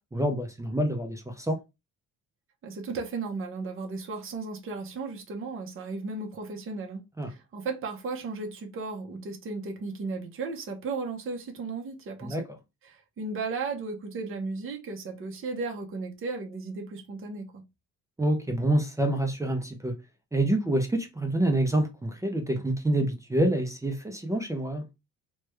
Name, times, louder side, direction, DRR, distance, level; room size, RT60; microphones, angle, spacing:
voice 1, 0.1-1.6 7.2-7.3 12.2-12.4 18.2-19.9 20.3-24.8, right 1 dB, 10° right, 0.4 m, -27 dB
voice 2, 2.6-12.4 12.8-17.6, right 4 dB, 40° right, 0.7 m, -35 dB
3.2 x 2.2 x 3.1 m
cardioid pair, 160°, 34 cm